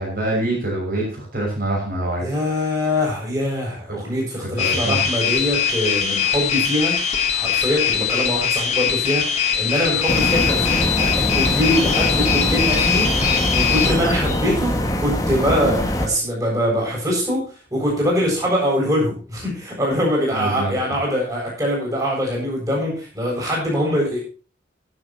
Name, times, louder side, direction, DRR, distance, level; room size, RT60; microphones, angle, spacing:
voice 1, 0.0-2.2 4.6-5.0 20.3-20.8, right 1 dB, 50° right, -2 dB, 6.2 m, -25 dB
voice 2, 2.2-7.0 7.3-24.2, equal, 20° right, -3 dB, 7.6 m, -23 dB
sound 1, 4.6-13.9, left 8 dB, 40° left, 3.0 m, -21 dB
sound 2, 10.1-16.1, equal, 20° left, 1.7 m, -22 dB
23.0 x 8.3 x 2.9 m, 0.35 s
head